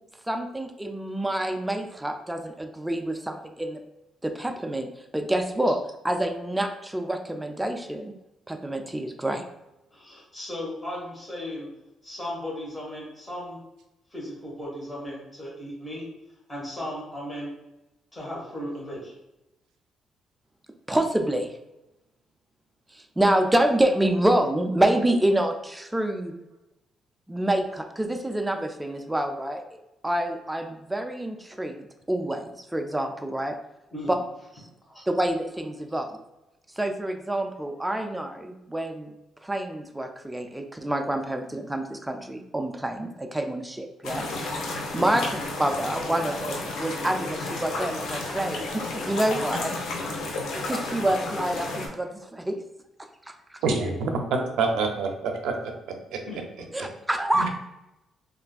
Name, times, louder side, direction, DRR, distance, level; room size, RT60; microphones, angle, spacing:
voice 1, 0.3-3.8 4.2-4.9 5.1-5.8 6.0-8.1 8.5-9.4 20.9-21.5 22.9-26.3 27.3-29.6 30.0-31.7 32.1-33.6 34.1-34.2 35.1-36.2 36.8-39.1 39.4-44.3 44.9-45.2 45.6-49.8 50.3-52.6 53.5-53.6 56.7-57.5, right 1 dB, 10° right, 4 dB, 0.3 m, -27 dB
voice 2, 9.9-11.7 12.0-13.6 14.1-16.0 16.5-17.5 18.1-19.2 33.9-34.1 34.9-35.0 44.9-45.2 53.6-54.0 54.3-54.4 56.2-56.4, left 1 dB, 10° left, -5 dB, 1.3 m, -36 dB
sound 1, 44.0-51.9, left 2 dB, 80° left, 0.6 m, -32 dB
voice 3, 54.0-55.7 56.1-56.2 57.3-57.5, right 4 dB, 85° right, 5 dB, 0.5 m, -26 dB
3.4 x 2.4 x 2.3 m, 0.94 s
cardioid pair, 90°, 0 cm